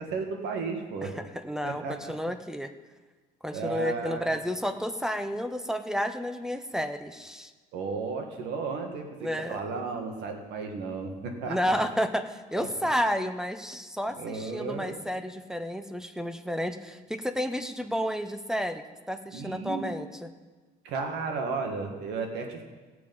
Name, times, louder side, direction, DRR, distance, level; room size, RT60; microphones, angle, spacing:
voice 1, 0.0-1.1 1.6-2.1 3.5-4.3 7.7-11.8 12.6-12.9 14.1-14.9 19.3-19.9 20.8-22.6, right 4 dB, 85° right, 4 dB, 1.7 m, -34 dB
voice 2, 1.0-2.7 3.4-7.5 9.2-9.6 11.5-20.3, equal, 5° right, 10 dB, 0.7 m, -31 dB
17.5 x 6.8 x 5.4 m, 1.3 s
cardioid pair, 110°, 17 cm